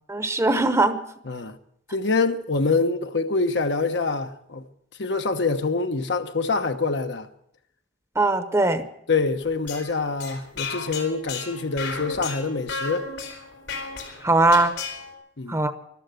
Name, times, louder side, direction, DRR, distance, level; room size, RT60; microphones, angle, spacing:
voice 1, 0.1-1.0 8.2-8.8 14.2-14.7 15.5-15.7, right 2 dB, 15° right, 0.9 m, -20 dB
voice 2, 1.2-1.6 1.9-4.7 5.0-7.3 9.1-13.1 15.4-15.6, left 3 dB, 70° left, 1.1 m, -25 dB
sound 1, 9.4-15.1, left 4 dB, 90° left, 4.0 m, -34 dB
14.0 x 12.5 x 7.9 m
head